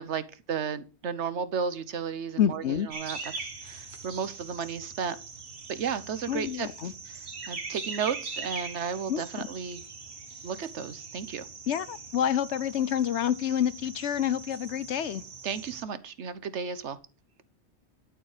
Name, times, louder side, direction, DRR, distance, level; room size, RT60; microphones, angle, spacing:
voice 1, 0.0-3.2 3.6-5.2 5.7-6.7 7.1-7.2 7.5-9.8 10.4-11.5 15.4-17.0, right 6 dB, 90° right, 1.3 m, -33 dB
voice 2, 2.4-2.9 6.3-6.9 9.1-9.2 11.7-15.2, left 10 dB, 90° left, 1.1 m, -28 dB
sound 1, 2.9-15.8, right 4 dB, 70° right, 1.8 m, -42 dB
12.0 x 7.1 x 4.9 m
omnidirectional pair, 1.1 m